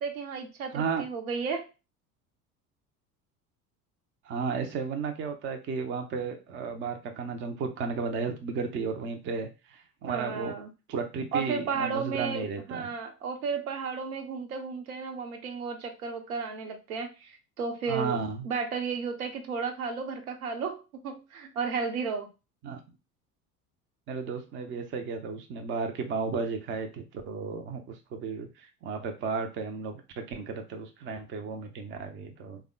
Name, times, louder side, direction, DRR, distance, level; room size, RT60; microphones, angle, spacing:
voice 1, 0.0-1.7 10.0-10.7 11.3-18.2 18.4-22.3, right 5 dB, 65° right, 4 dB, 0.8 m, -33 dB
voice 2, 0.7-1.1 4.3-10.6 10.9-12.9 17.9-18.4 22.6-22.8 24.1-32.6, right 5 dB, 25° right, 5 dB, 0.5 m, -34 dB
3.4 x 2.2 x 3.5 m, 0.29 s
figure-of-eight pair, 70°, 46 cm